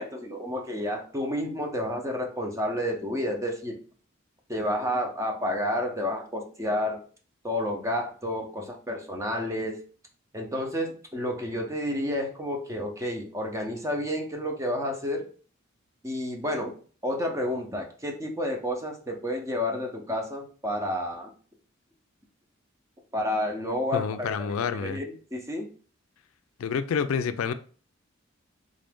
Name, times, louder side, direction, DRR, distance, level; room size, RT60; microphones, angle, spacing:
voice 1, 0.0-3.8 4.5-7.0 7.4-9.8 10.3-15.3 16.0-16.7 17.0-21.3 23.1-25.7, left 1 dB, 15° right, 2 dB, 0.7 m, -30 dB
voice 2, 23.9-25.0 26.6-27.5, left 6 dB, 85° left, 11 dB, 0.4 m, -28 dB
3.7 x 2.6 x 3.4 m, 0.41 s
head